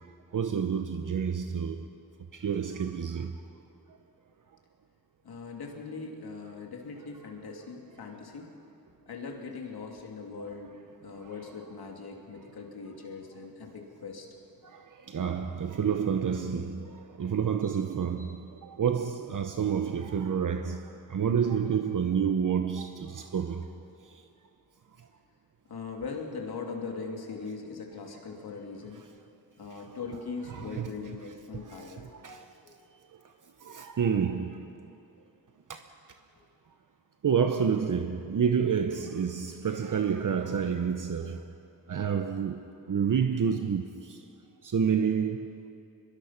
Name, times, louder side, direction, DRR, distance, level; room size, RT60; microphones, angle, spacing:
voice 1, 0.3-1.9 2.3-3.4 7.5-7.6 14.6-23.7 29.7-29.9 30.5-30.9 31.7-32.4 33.6-34.7 35.7-35.8 37.2-41.4 41.9-42.6 42.9-44.2 44.6-45.7, right 7 dB, 55° right, 1.0 m, -29 dB
voice 2, 5.2-8.5 9.1-10.7 11.0-14.3 25.7-29.0 29.6-32.1 32.6-32.7, left 4 dB, 85° left, 3.0 m, -40 dB
24.0 x 22.0 x 5.9 m
wide cardioid pair, 115°, 37 cm